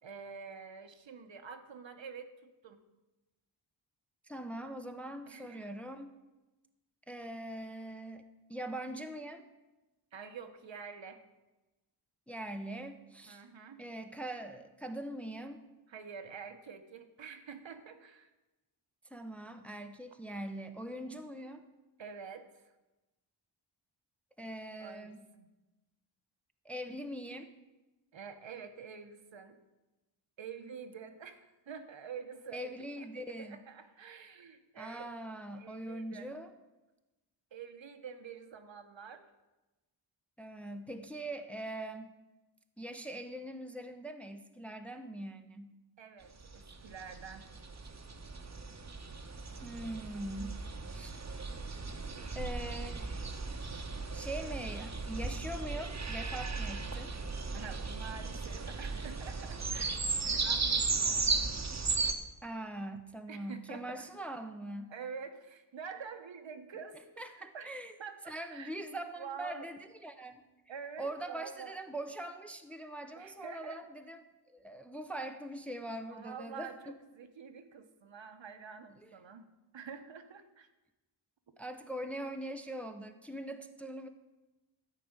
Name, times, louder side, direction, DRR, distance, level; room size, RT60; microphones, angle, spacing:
voice 1, 0.0-2.8 5.3-5.8 10.1-11.2 13.3-13.8 15.9-18.3 22.0-22.7 24.8-25.1 25.4-25.5 28.1-29.6 30.4-32.7 33.2-35.1 35.5-36.3 37.5-39.3 46.0-47.5 57.5-61.5 63.3-64.0 64.9-67.0 67.3-67.7 68.0-69.7 70.7-71.8 73.2-73.8 76.0-79.5 79.7-80.7, right 6 dB, 70° right, 8 dB, 1.1 m, -47 dB
voice 2, 4.2-6.1 7.1-8.2 8.5-9.4 12.3-13.4 13.8-15.6 19.1-21.6 24.4-25.2 26.6-27.5 32.5-33.6 34.8-36.5 40.4-42.1 42.8-45.7 49.6-50.6 50.9-51.2 52.3-53.3 54.1-57.1 62.4-64.9 67.2-67.9 68.3-70.4 71.0-74.2 74.5-77.0 79.0-79.1 81.6-84.1, right 1 dB, 5° left, 6 dB, 0.7 m, -42 dB
sound 1, 46.4-62.1, right 4 dB, 35° right, 1.0 m, -36 dB
13.0 x 5.1 x 8.8 m, 1.1 s
wide cardioid pair, 120°, 47 cm